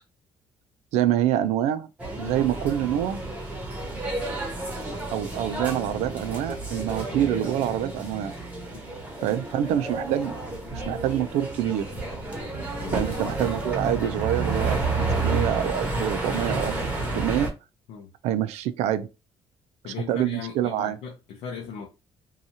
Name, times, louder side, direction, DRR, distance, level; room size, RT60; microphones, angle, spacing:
voice 1, 0.9-1.9 2.2-3.2 5.1-8.3 9.2-10.4 10.7-11.9 12.9-16.7 17.1-17.5 18.2-19.1 20.1-21.0, right 11 dB, 85° right, 0.4 m, -26 dB
sound 1, 2.0-17.5, right 2 dB, 15° right, 0.8 m, -30 dB
voice 2, 19.8-21.9, left 6 dB, 80° left, 0.6 m, -38 dB
2.7 x 2.3 x 2.7 m
cardioid pair, 145°, 11 cm